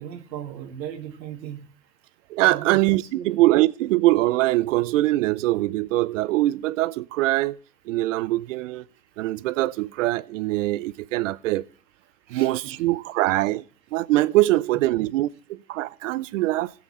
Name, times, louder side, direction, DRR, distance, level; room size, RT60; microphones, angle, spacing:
voice 1, 0.0-1.6 2.4-2.8 3.1-3.4 12.3-12.8 14.7-14.9, right 10 dB, 85° right, 2.0 m, -37 dB
voice 2, 2.3-7.6 7.9-8.8 9.2-11.6 12.3-13.6 13.9-16.7, right 17 dB, 50° right, 0.5 m, -23 dB
17.0 x 8.0 x 3.2 m
supercardioid pair, 150°, 49 cm